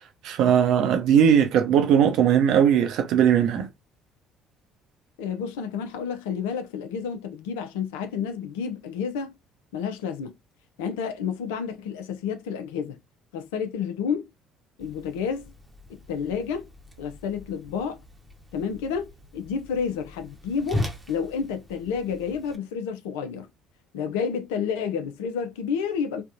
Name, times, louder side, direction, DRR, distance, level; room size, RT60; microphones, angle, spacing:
voice 1, 0.2-3.7, right 8 dB, 65° right, 0.7 m, -19 dB
voice 2, 5.2-9.3 9.7-10.4 10.8-13.0 13.3-14.3 14.8-15.5 16.1-16.7 17.0-18.0 18.5-23.5 23.9-26.2, left 6 dB, 75° left, 0.5 m, -30 dB
Whoosh swoosh swish, 14.8-22.6, left 1 dB, 15° right, 0.9 m, -38 dB
3.4 x 2.2 x 2.6 m
hypercardioid pair, 55°, 0 cm